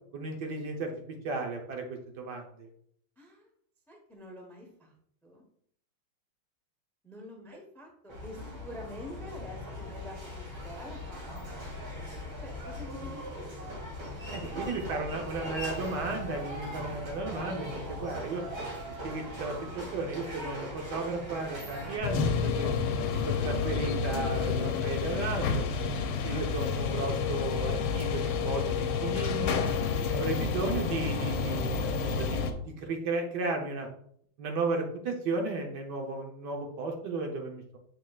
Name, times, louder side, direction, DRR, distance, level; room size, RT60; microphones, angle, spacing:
voice 1, 0.1-0.9 1.2-2.7 14.3-18.4 18.9-22.7 23.1-25.6 26.2-29.6 30.1-33.9 34.4-37.8, right 3 dB, 60° right, 2 dB, 1.3 m, -34 dB
voice 2, 3.2-3.5 3.9-4.9 5.2-5.4 7.0-11.8 12.4-14.2 14.5-15.3, left 1 dB, 5° left, 1 dB, 0.4 m, -47 dB
sound 1, 8.1-22.0, equal, 85° right, 3.2 m, -40 dB
sound 2, 22.0-32.5, left 5 dB, 75° left, 1.4 m, -29 dB
7.7 x 5.3 x 2.3 m, 0.65 s
omnidirectional pair, 2.3 m